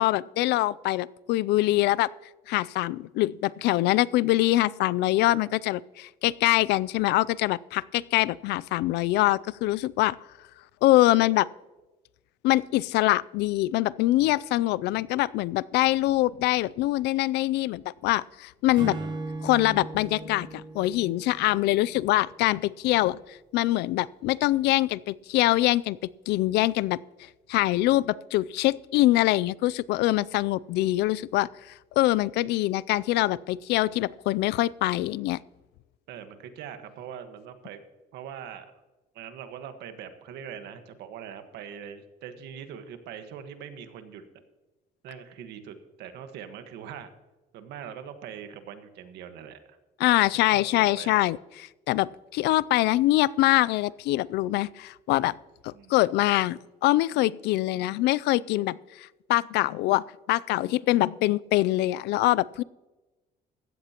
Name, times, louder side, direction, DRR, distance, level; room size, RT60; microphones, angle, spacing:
voice 1, 0.0-2.1 2.5-10.1 10.8-11.5 12.4-19.0 19.4-26.0 26.3-27.0 27.5-31.5 32.0-35.4 50.0-51.4 51.9-55.4 55.6-62.6, left 17 dB, 80° left, 21 dB, 0.4 m, -24 dB
voice 2, 18.7-19.2 33.8-33.9 36.1-37.8 38.1-38.7 39.1-44.2 45.0-47.1 47.5-49.8 50.3-51.2 55.7-56.0, right 8 dB, 80° right, 8 dB, 1.5 m, -42 dB
Acoustic guitar / Strum, 18.8-22.2, right 2 dB, 30° right, 3.8 m, -38 dB
16.0 x 13.0 x 2.9 m, 1.1 s
cardioid pair, 110°, 17 cm